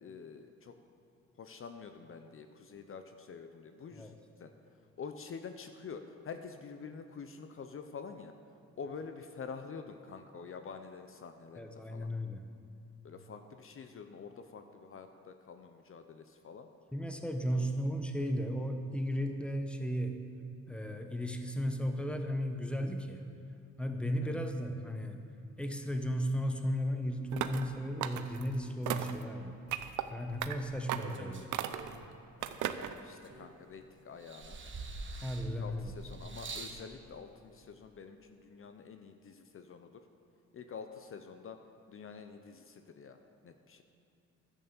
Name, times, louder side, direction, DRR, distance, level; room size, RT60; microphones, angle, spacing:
voice 1, 0.0-0.7 1.4-4.1 4.4-4.5 5.0-8.3 8.8-12.1 13.0-16.7 17.5-17.7 24.2-24.4 32.4-34.6 35.4-39.9 40.5-41.6 41.9-43.2 43.4-43.8, left 5 dB, 45° left, 7 dB, 0.8 m, -47 dB
voice 2, 11.6-12.4 16.9-20.2 20.7-23.2 23.8-25.2 25.6-29.5 30.1-31.5 35.2-35.9, equal, 5° left, 5 dB, 1.0 m, -35 dB
sound 1, 27.3-27.7 28.0-28.5 28.9-29.2 29.7-30.0 30.4-30.5 30.9-31.2 31.5-32.0 32.4-32.9, right 12 dB, 80° right, 0.6 m, -36 dB
sound 2, 30.3-32.1 32.7-33.8 34.2-36.8 37.7-37.8, right 3 dB, 40° right, 1.3 m, -46 dB
11.0 x 8.4 x 7.2 m, 2.6 s
cardioid pair, 90°, 30 cm